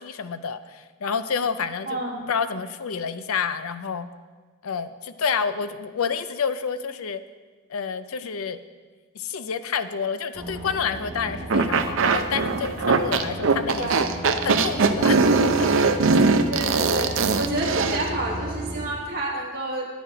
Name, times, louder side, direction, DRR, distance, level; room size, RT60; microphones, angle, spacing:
voice 1, 0.0-2.0 2.3-4.1 4.6-7.2 7.7-8.6 9.1-14.0 14.4-15.2 15.6-15.7, left 6 dB, 75° left, 11 dB, 0.5 m, -29 dB
voice 2, 1.9-2.2 13.8-13.9 16.5-19.9, right 1 dB, 45° right, -5 dB, 1.5 m, -29 dB
sound 1, 10.3-18.9, right 1 dB, 15° left, 1.6 m, -35 dB
sound 2, 11.5-18.1, right 4 dB, 65° right, 0.6 m, -20 dB
9.3 x 9.2 x 5.0 m, 1.4 s
head